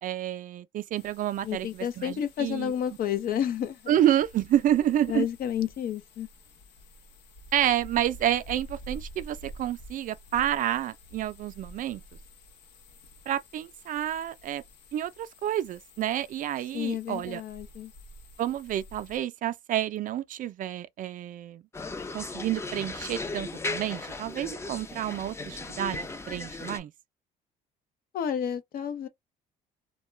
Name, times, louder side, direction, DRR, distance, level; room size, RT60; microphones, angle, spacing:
voice 1, 0.0-2.7 3.9-5.3 7.5-12.0 13.3-14.6 14.9-17.4 18.4-21.6 22.1-26.9, right 11 dB, 50° right, 0.4 m, -29 dB
sound 1, 0.9-19.2, equal, 90° left, 0.9 m, -50 dB
voice 2, 1.4-4.0 5.1-6.3 16.7-17.9 28.1-29.1, left 9 dB, 60° left, 0.6 m, -30 dB
sound 2, 21.7-26.8, left 3 dB, 15° left, 0.5 m, -36 dB
2.2 x 2.2 x 3.1 m
cardioid pair, 110°, 17 cm